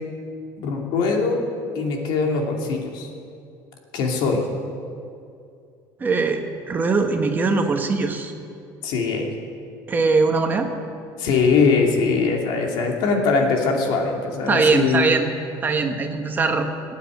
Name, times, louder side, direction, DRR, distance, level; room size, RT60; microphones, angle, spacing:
voice 1, 0.6-1.4 1.7-3.1 3.9-4.4 8.8-9.3 11.2-15.1, left 4 dB, 70° left, 1 dB, 2.6 m, -21 dB
voice 2, 6.0-8.3 9.9-10.7 14.5-15.3 15.6-16.7, right 4 dB, 25° right, 5 dB, 1.2 m, -21 dB
18.0 x 8.7 x 9.2 m, 2.5 s
cardioid pair, 150°, 8 cm